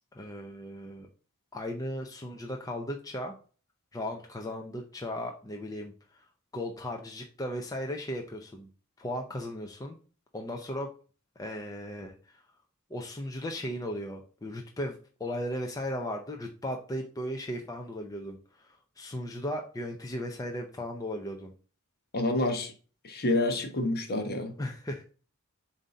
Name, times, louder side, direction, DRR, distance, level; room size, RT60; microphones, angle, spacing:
voice 1, 0.1-1.1 1.5-3.3 3.9-5.9 6.5-8.7 9.0-10.0 10.3-10.9 11.4-12.1 12.9-18.7 19.0-21.5 24.6-25.0, left 1 dB, 15° left, 0.6 m, -36 dB
voice 2, 22.1-22.7 23.0-24.6, left 2 dB, 45° left, 1.1 m, -28 dB
7.3 x 2.8 x 5.1 m
head